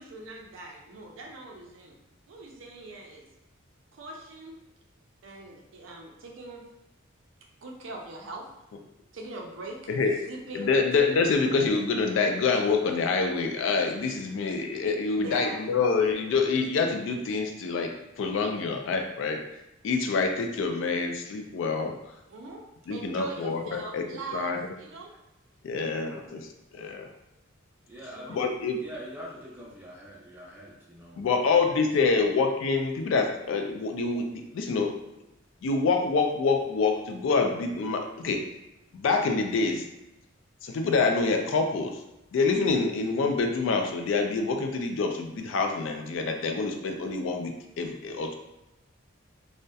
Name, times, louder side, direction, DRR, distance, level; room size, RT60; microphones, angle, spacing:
voice 1, 0.0-2.0 2.3-3.3 3.9-4.5 5.2-6.6 7.6-8.5 9.1-9.9 10.2-10.7 15.2-15.8 22.3-22.6 22.9-25.1 28.1-28.4, right 2 dB, 70° right, 1 dB, 0.4 m, -41 dB
voice 2, 10.5-19.4 19.8-21.9 22.9-24.0 24.3-24.6 25.6-26.5 26.7-27.1 28.3-28.8 31.2-34.9 35.6-38.4 38.9-39.9 40.6-42.0 42.3-48.3, left 4 dB, 65° left, 4 dB, 0.3 m, -26 dB
voice 3, 27.8-28.5 28.8-31.9, equal, 10° right, -6 dB, 0.5 m, -44 dB
2.6 x 2.1 x 2.2 m, 0.90 s
head